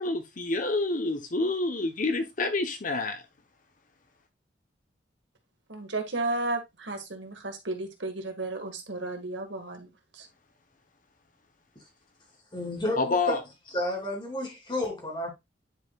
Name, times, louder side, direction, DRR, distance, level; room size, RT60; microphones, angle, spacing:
voice 1, 0.0-3.2 13.0-13.4, left 3 dB, 45° left, 1.0 m, -28 dB
voice 2, 5.7-10.3, right 2 dB, 85° right, 2.0 m, -33 dB
voice 3, 12.5-13.4 13.7-15.3, left 1 dB, 25° left, 3.2 m, -31 dB
10.5 x 4.9 x 2.4 m
head